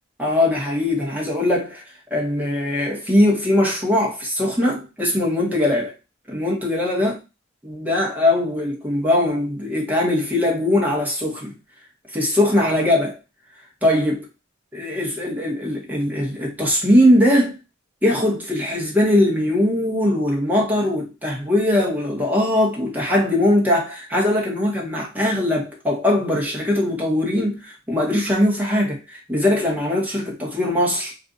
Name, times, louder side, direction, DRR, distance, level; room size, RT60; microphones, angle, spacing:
voice 1, 0.2-1.8 2.1-5.9 6.3-7.2 7.6-11.5 12.1-13.2 13.8-14.2 14.7-17.5 18.0-31.1, left 1 dB, 10° right, 1.0 m, -20 dB
2.6 x 2.4 x 3.7 m
head